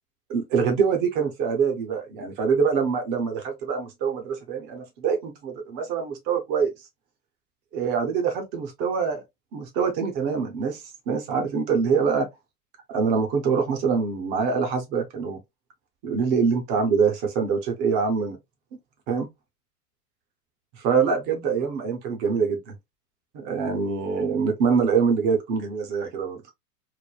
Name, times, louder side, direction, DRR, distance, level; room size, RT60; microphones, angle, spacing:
voice 1, 0.3-6.7 7.7-9.2 9.5-12.3 12.9-15.4 16.0-18.4 19.1-19.3 20.8-22.8 23.3-26.4, right 5 dB, 20° right, 0.6 m, -24 dB
3.2 x 2.1 x 2.3 m
hypercardioid pair, 125°, 48 cm